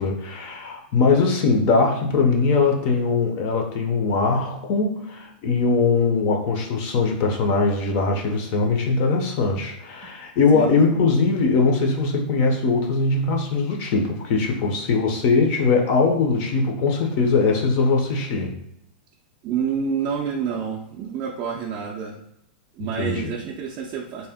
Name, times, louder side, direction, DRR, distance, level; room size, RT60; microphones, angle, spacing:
voice 1, 0.0-18.5 22.8-23.3, left 4 dB, 35° left, 2 dB, 0.5 m, -21 dB
voice 2, 10.5-11.0 19.4-22.2 22.8-24.3, right 6 dB, 30° right, -2 dB, 0.3 m, -28 dB
2.7 x 2.1 x 3.4 m, 0.77 s
supercardioid pair, 155°, 6 cm